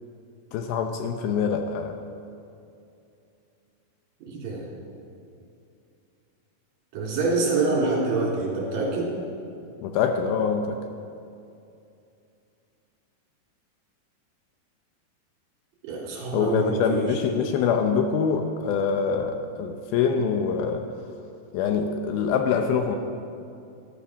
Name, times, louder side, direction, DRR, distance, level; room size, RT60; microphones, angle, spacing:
voice 1, 0.5-2.0 9.8-10.8 16.3-20.8 21.5-23.0, left 6 dB, 75° left, 5 dB, 2.4 m, -24 dB
voice 2, 4.3-4.7 6.9-9.1 15.8-17.1, right 3 dB, 60° right, -4 dB, 4.8 m, -26 dB
13.0 x 13.0 x 6.1 m, 2.6 s
omnidirectional pair, 4.7 m